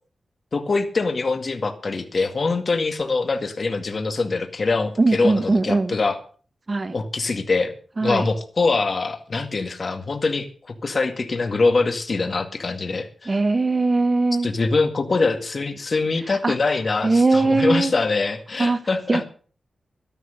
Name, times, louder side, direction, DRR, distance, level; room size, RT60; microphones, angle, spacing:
voice 1, 0.5-6.2 6.9-7.7 8.0-13.4 14.4-19.2, left 3 dB, 45° left, 2.1 m, -23 dB
voice 2, 5.0-6.0 6.7-7.0 8.0-8.3 13.3-14.5 16.3-16.5 17.0-17.9 18.6-18.8 19.1-19.2, right 3 dB, 35° right, 1.4 m, -20 dB
12.5 x 11.0 x 6.6 m
wide cardioid pair, 90°, 0 cm